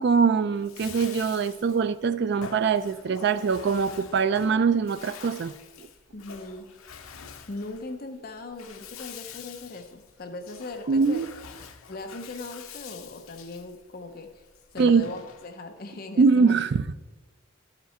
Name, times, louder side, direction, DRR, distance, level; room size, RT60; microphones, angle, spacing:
voice 1, 0.0-5.5 5.8-5.9 10.9-11.3 14.8-15.0 16.2-17.0, right 5 dB, 55° right, 0.3 m, -23 dB
Bathtub (filling or washing), 0.5-15.7, left 7 dB, 85° left, 0.7 m, -46 dB
voice 2, 6.1-6.7 7.5-11.4 11.9-14.5 14.7-16.6, left 2 dB, 45° left, 0.6 m, -39 dB
13.0 x 5.9 x 4.3 m
head